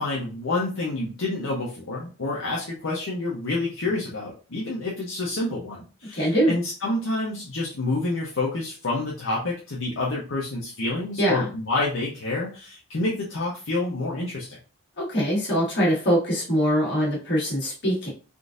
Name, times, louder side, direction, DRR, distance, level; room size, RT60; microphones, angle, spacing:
voice 1, 0.0-14.6, left 2 dB, 70° left, -4 dB, 0.7 m, -28 dB
voice 2, 6.1-6.5 11.2-11.5 15.0-18.1, equal, 50° left, -5 dB, 1.6 m, -23 dB
3.7 x 2.5 x 2.4 m, 0.37 s
head